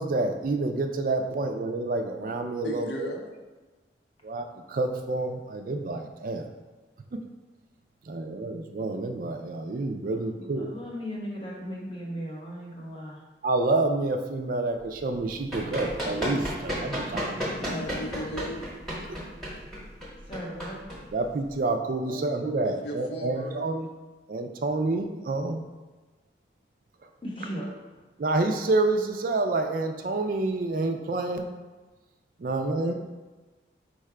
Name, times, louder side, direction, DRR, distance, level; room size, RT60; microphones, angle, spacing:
voice 1, 0.0-3.1 4.2-6.5 8.1-10.7 13.4-17.7 19.0-19.2 21.1-23.9 24.3-25.6 28.2-31.5 32.4-32.9, right 2 dB, 50° right, 5 dB, 0.3 m, -28 dB
voice 2, 2.6-3.2 17.2-18.7 22.0-22.3 22.6-23.7 32.8-32.9, equal, 70° left, 1 dB, 0.6 m, -37 dB
voice 3, 10.1-13.2 17.7-18.1 20.3-20.8 27.2-27.7, equal, 30° left, -3 dB, 0.9 m, -37 dB
Run, 15.1-21.6, equal, ahead, 0.9 m, -33 dB
4.7 x 2.2 x 4.7 m, 1.3 s
head